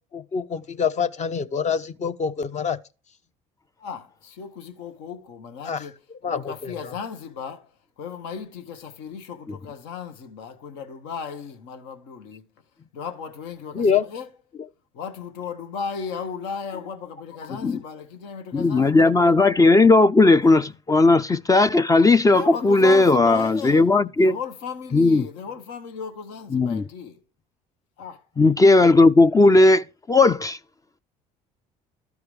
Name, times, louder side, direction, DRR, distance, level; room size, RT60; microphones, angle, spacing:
voice 1, 0.1-2.8 5.7-5.8 6.2-6.7 13.7-14.1, left 6 dB, 35° left, 0.8 m, -25 dB
voice 2, 3.8-12.5 12.9-14.3 14.9-19.5 22.3-23.9 24.2-27.2 28.0-28.2, left 6 dB, 70° left, 1.1 m, -36 dB
voice 3, 18.5-24.4 24.9-25.2 26.5-26.8 28.4-30.6, left 2 dB, 20° left, 0.4 m, -16 dB
13.0 x 4.7 x 3.2 m
hypercardioid pair, 60°, 19 cm